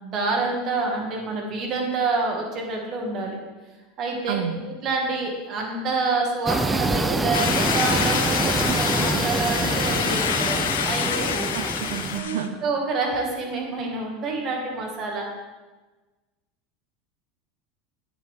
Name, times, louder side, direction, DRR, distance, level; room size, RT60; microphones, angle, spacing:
voice 1, 0.0-3.4 4.0-4.4 4.6-11.3 12.1-15.3, right 3 dB, 45° right, 0 dB, 2.2 m, -27 dB
voice 2, 4.3-4.6 11.5-12.6, right 9 dB, 75° right, 9 dB, 0.6 m, -30 dB
sound 1, 6.5-12.2, right 2 dB, 15° right, 0.6 m, -26 dB
sound 2, 7.3-12.5, left 8 dB, 80° left, 0.6 m, -27 dB
9.3 x 8.0 x 3.7 m, 1.2 s
hypercardioid pair, 90°, 0 cm